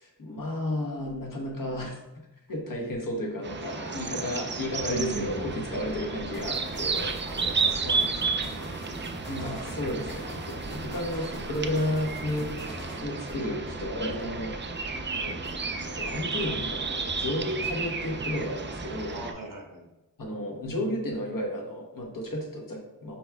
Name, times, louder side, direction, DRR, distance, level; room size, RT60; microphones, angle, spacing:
voice 1, 0.0-2.0 2.5-7.1 9.3-12.5 13.0-15.4 15.8-19.2 20.2-23.2, left 1 dB, 60° left, -1 dB, 1.1 m, -32 dB
sound 1, 3.4-19.3, right 4 dB, 30° right, 0.4 m, -33 dB
voice 2, 3.6-4.4 4.8-5.5 7.0-8.5 19.1-19.9, right 2 dB, 60° right, -1 dB, 1.0 m, -40 dB
sound 2, 4.8-19.2, equal, 15° left, 0.6 m, -44 dB
sound 3, 6.3-13.0, left 1 dB, 85° left, 1.4 m, -43 dB
4.5 x 4.1 x 2.3 m, 0.97 s
wide cardioid pair, 45°, 37 cm